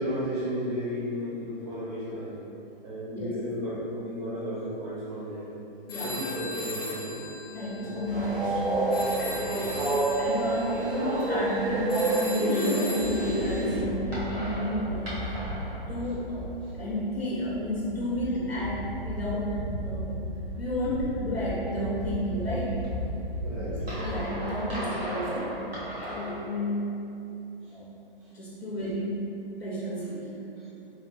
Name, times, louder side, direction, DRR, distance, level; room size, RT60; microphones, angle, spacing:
voice 1, 0.0-2.4 2.8-5.5 6.0-7.3 7.8-8.2 8.9-9.7 16.6-16.7 23.4-24.0 27.6-27.8 28.2-28.3 30.6-30.7, equal, 30° right, -10 dB, 0.5 m, -34 dB
sound 1, 5.9-13.6, left 2 dB, 25° left, 0.5 m, -39 dB
voice 2, 7.5-8.7 9.4-9.9 10.2-15.4 15.7-16.4 16.7-20.2 20.6-22.8 23.5-25.5 25.9-27.0 27.7-27.9 28.3-29.3 29.6-30.4, equal, 85° left, -6 dB, 0.6 m, -31 dB
Train, 8.1-13.8, right 2 dB, 65° right, 0.7 m, -28 dB
sound 2, 13.0-26.4, equal, 80° right, 1.3 m, -35 dB
3.3 x 2.2 x 2.5 m, 2.8 s
figure-of-eight pair, 125°, 29 cm